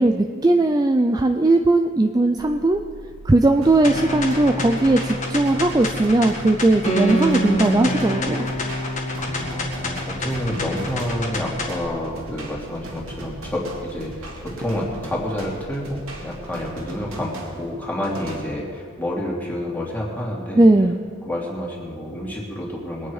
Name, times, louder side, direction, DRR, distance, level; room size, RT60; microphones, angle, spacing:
voice 1, 0.0-2.8 3.2-8.5 20.5-21.0, right 2 dB, 20° right, 6 dB, 0.4 m, -18 dB
sound 1, 2.4-16.8, right 2 dB, 65° right, 1.1 m, -45 dB
sound 2, 3.6-18.4, right 1 dB, 90° right, 2.8 m, -38 dB
sound 3, 3.8-11.8, equal, 35° left, 1.8 m, -27 dB
voice 2, 9.2-20.6 21.2-23.1, left 1 dB, 10° left, -4 dB, 2.8 m, -29 dB
22.0 x 9.4 x 4.8 m, 2.2 s
head